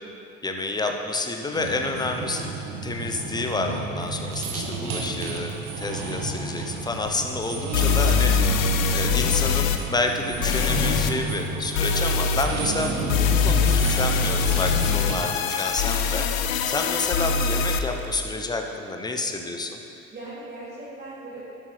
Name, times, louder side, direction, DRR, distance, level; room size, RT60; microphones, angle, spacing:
voice 1, 0.4-2.5 2.8-8.7 8.9-16.3 16.7-19.8, left 2 dB, 10° left, 4 dB, 0.8 m, -29 dB
sound 1, 1.5-15.2, right 3 dB, 50° right, 1.5 m, -31 dB
Rain, 4.0-18.2, right 3 dB, 80° right, 1.1 m, -45 dB
sound 2, 7.1-7.2 7.7-9.8 10.4-11.1 11.7-12.5 13.1-17.8, left 6 dB, 70° left, 0.7 m, -23 dB
voice 2, 20.1-21.5, right 2 dB, 20° right, -8 dB, 2.1 m, -41 dB
11.5 x 7.8 x 3.4 m, 2.7 s
figure-of-eight pair, 70°, 41 cm